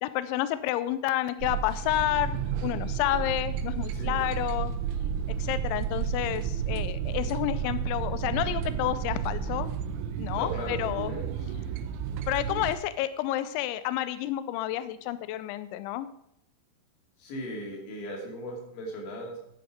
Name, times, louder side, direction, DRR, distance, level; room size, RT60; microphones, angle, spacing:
voice 1, 0.0-4.7 5.4-9.7 10.2-11.2 12.3-16.1, left 14 dB, 90° left, 13 dB, 2.7 m, -30 dB
sound 1, 1.4-12.7, right 7 dB, 80° right, 3.0 m, -31 dB
voice 2, 3.9-4.3 10.3-11.3 17.2-19.4, equal, 65° left, -1 dB, 4.6 m, -37 dB
10.5 x 9.1 x 5.1 m, 0.75 s
omnidirectional pair, 5.9 m